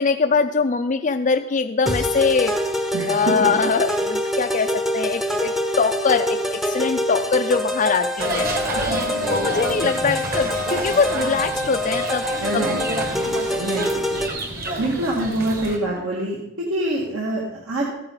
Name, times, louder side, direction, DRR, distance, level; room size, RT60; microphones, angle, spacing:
voice 1, 0.0-2.6 3.1-8.5 9.2-12.2 12.5-12.7, left 5 dB, 35° left, 6 dB, 0.4 m, -22 dB
sound 1, 1.9-14.3, equal, ahead, 0.7 m, -25 dB
voice 2, 2.9-3.5 8.9-9.7 12.4-13.3 13.6-14.1 14.8-17.8, right 1 dB, 70° right, -4 dB, 2.1 m, -26 dB
sound 2, 8.2-15.8, right 1 dB, 45° right, 1.8 m, -29 dB
14.0 x 9.7 x 3.9 m, 0.94 s
head